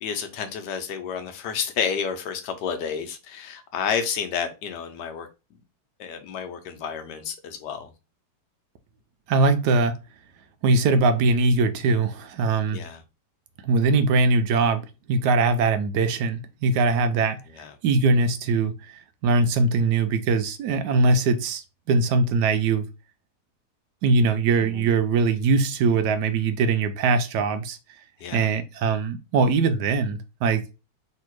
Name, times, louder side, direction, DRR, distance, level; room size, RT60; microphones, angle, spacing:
voice 1, 0.0-5.3 6.0-7.9 12.7-13.0 17.5-17.7 24.6-24.9 28.2-28.5, left 7 dB, 85° left, 1.4 m, -30 dB
voice 2, 9.3-10.0 10.6-12.8 13.6-14.8 15.1-17.4 17.8-22.9 24.0-27.8 28.3-30.6, right 3 dB, 80° right, 1.2 m, -21 dB
3.3 x 2.8 x 4.5 m
omnidirectional pair, 1.8 m